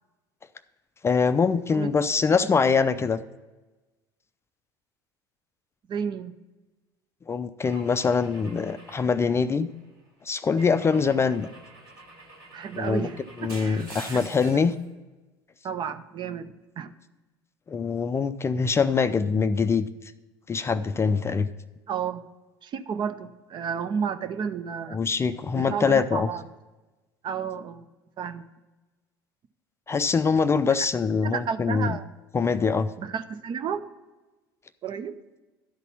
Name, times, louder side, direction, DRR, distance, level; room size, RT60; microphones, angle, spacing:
voice 1, 1.0-3.2 7.3-9.7 10.3-11.5 12.8-13.1 13.4-14.7 17.7-19.9 20.5-21.5 24.9-26.3 29.9-32.0 32.3-32.9, left 5 dB, 20° left, 11 dB, 0.4 m, -23 dB
voice 2, 5.9-6.3 10.9-11.2 12.5-14.2 14.5-14.6 15.6-16.9 21.9-22.2 22.6-25.0 25.5-26.4 27.2-27.9 28.2-28.5 30.8-30.9 31.3-32.0 33.0-33.8 34.8-35.1, right 7 dB, 40° right, 11 dB, 0.6 m, -32 dB
Car / Engine / Glass, 7.6-9.9 10.6-14.7, right 2 dB, 75° right, 3.0 m, -46 dB
12.0 x 4.1 x 6.8 m, 1.2 s
figure-of-eight pair, 65°, 12 cm